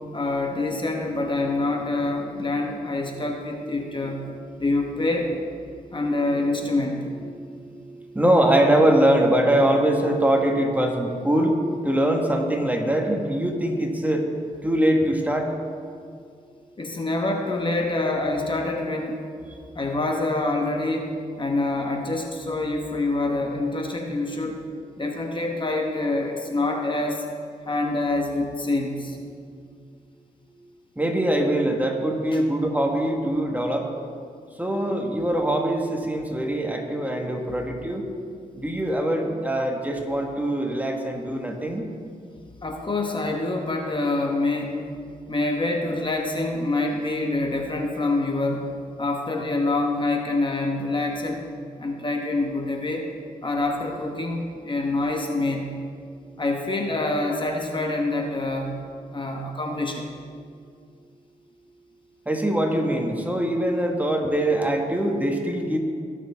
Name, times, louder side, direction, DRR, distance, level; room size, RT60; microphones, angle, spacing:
voice 1, 0.1-4.3 4.6-5.3 5.9-7.0 16.8-19.2 19.7-21.1 21.4-24.6 25.0-27.2 27.6-29.2 32.3-32.4 42.6-44.8 45.3-51.4 51.8-53.1 53.4-55.8 56.4-58.8 59.1-60.1, left 2 dB, 30° left, 2 dB, 1.2 m, -26 dB
voice 2, 8.1-11.5 11.8-14.2 14.6-15.5 31.0-33.8 34.6-38.0 38.6-41.9 62.3-65.8, right 1 dB, 10° right, 2 dB, 1.5 m, -22 dB
18.0 x 6.7 x 3.6 m, 2.2 s
cardioid pair, 70°, 16 cm